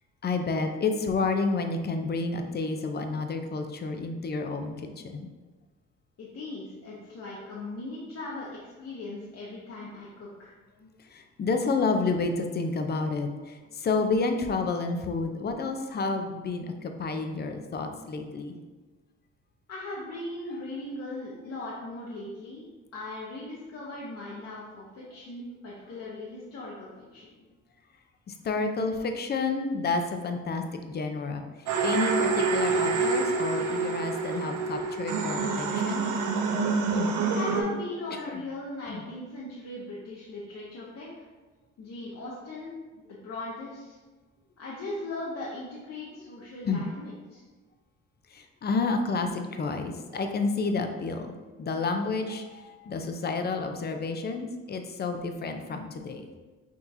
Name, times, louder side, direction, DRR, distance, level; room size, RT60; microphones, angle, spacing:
voice 1, 0.2-5.3 10.8-18.6 28.3-36.1 36.9-37.1 38.1-38.4 38.9-39.0 46.7-46.8 48.3-56.3, left 3 dB, 35° left, 6 dB, 0.5 m, -30 dB
voice 2, 6.2-10.5 19.7-22.6 22.9-27.3 37.3-41.3 41.8-42.7 43.1-44.0 44.6-47.4, left 2 dB, 55° left, -6 dB, 0.9 m, -39 dB
sound 1, 31.7-37.6, right 4 dB, 80° right, 0.6 m, -27 dB
5.9 x 2.9 x 2.6 m, 1.3 s
cardioid pair, 90°, 30 cm